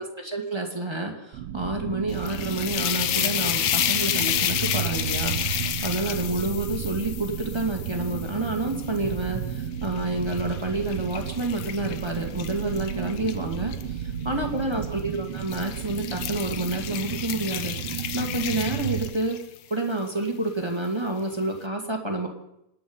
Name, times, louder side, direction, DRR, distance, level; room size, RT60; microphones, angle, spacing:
voice 1, 0.0-19.4 19.7-22.3, right 2 dB, 10° right, 1 dB, 1.4 m, -29 dB
sound 1, 1.3-19.1, right 10 dB, 85° right, 1.3 m, -33 dB
sound 2, 2.1-9.3 9.9-13.8 14.7-15.0 15.4-19.6, left 10 dB, 70° left, 1.5 m, -30 dB
27.0 x 9.3 x 5.5 m, 0.81 s
omnidirectional pair, 3.9 m